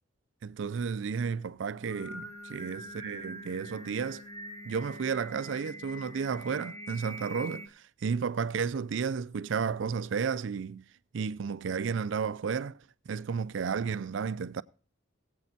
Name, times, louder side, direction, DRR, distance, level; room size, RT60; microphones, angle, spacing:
voice 1, 0.4-4.2 4.6-10.8 11.1-12.8 13.1-14.6, right 6 dB, 70° right, 0.4 m, -32 dB
Singing, 1.7-7.7, equal, 15° left, 1.0 m, -44 dB
21.0 x 8.3 x 2.7 m
head